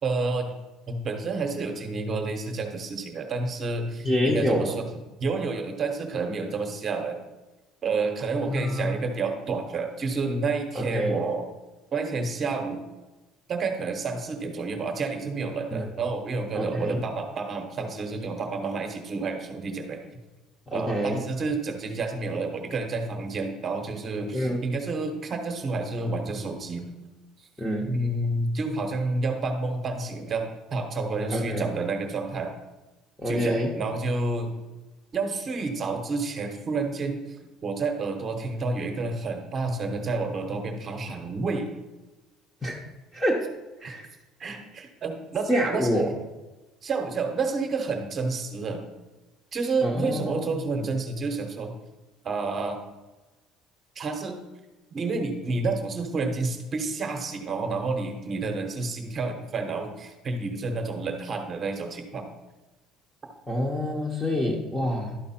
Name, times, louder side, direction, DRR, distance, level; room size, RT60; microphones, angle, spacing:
voice 1, 0.0-0.5 0.9-4.9 5.2-7.2 7.8-11.5 11.9-12.8 13.5-20.0 20.7-26.9 27.9-32.5 33.3-34.5 35.1-37.2 37.6-41.7 43.8-44.0 44.4-46.1 46.8-48.8 49.5-51.7 52.2-52.8 54.0-54.4 54.9-62.3, right 3 dB, 30° right, 4 dB, 1.0 m, -29 dB
voice 2, 4.0-4.8 8.5-8.9 10.7-11.2 15.7-15.9 16.5-17.0 20.7-21.2 24.3-24.6 27.6-28.0 31.3-31.7 33.2-33.7 42.6-42.8 43.1-43.4 43.8-44.1 45.5-46.1 49.8-50.6 63.5-65.2, equal, 5° left, -3 dB, 0.8 m, -26 dB
11.5 x 4.6 x 4.3 m, 1.1 s
cardioid pair, 165°, 0 cm